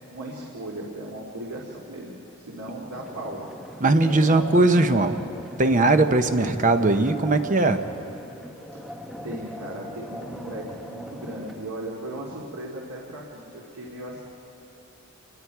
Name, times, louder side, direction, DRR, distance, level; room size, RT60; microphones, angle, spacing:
voice 1, 0.1-3.4 8.7-9.0 9.2-14.2, right 1 dB, 90° right, -3 dB, 2.3 m, -37 dB
sound 1, 2.9-11.7, equal, ahead, 0.9 m, -40 dB
voice 2, 3.8-5.2 5.6-7.8, right 2 dB, 35° right, 8 dB, 0.8 m, -19 dB
28.5 x 20.0 x 4.7 m, 2.8 s
head